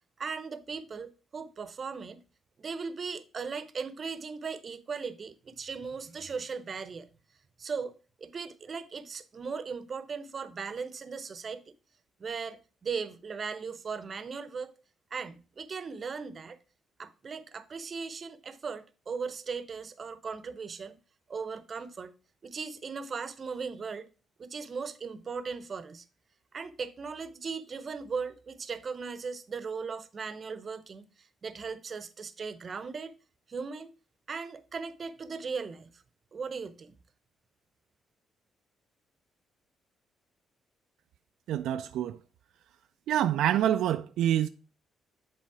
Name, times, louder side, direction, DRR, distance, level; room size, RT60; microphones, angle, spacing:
voice 1, 0.2-2.2 2.6-7.1 7.6-11.6 12.2-14.7 15.1-16.6 17.0-21.0 21.3-22.1 22.4-24.1 24.4-26.0 26.5-33.1 33.5-33.9 34.3-36.0 36.3-36.9, right 5 dB, 40° right, 0.7 m, -38 dB
voice 2, 41.5-42.2 43.1-44.5, right 11 dB, 85° right, 0.3 m, -26 dB
7.4 x 4.2 x 4.7 m
cardioid pair, 90°, 0 cm